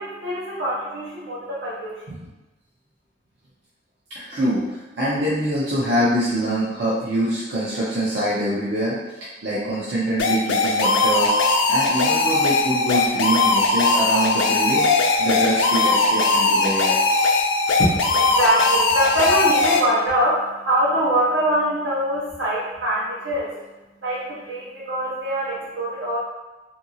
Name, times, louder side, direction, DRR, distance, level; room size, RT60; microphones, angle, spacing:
voice 1, 0.0-2.0 17.8-26.2, equal, 85° right, -7 dB, 1.0 m, -24 dB
voice 2, 4.1-9.0 9.4-11.4 11.7-14.9 15.2-17.0, right 1 dB, 65° right, -9 dB, 0.7 m, -24 dB
sound 1, 10.2-19.8, left 3 dB, 80° left, 0.4 m, -19 dB
2.7 x 2.7 x 2.7 m, 1.1 s
head